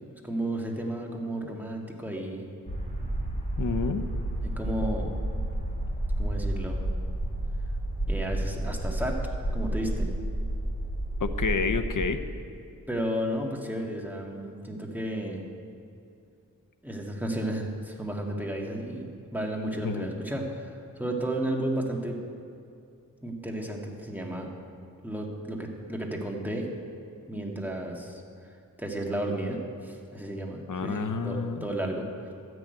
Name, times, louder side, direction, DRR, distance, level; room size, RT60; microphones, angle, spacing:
voice 1, 0.2-2.5 4.4-5.1 6.2-6.8 8.1-9.2 9.5-10.1 12.9-15.4 16.8-19.1 19.3-20.7 21.0-22.2 23.2-24.5 25.0-26.7 27.3-28.2 28.8-32.3, right 1 dB, 5° right, -1 dB, 1.9 m, -33 dB
sound 1, 2.7-12.0, right 1 dB, 20° left, 3.6 m, -31 dB
voice 2, 3.6-4.0 11.2-12.2 19.8-20.1 30.7-31.7, left 4 dB, 65° left, 7 dB, 0.9 m, -29 dB
13.0 x 6.3 x 9.0 m, 2.6 s
wide cardioid pair, 60°, 34 cm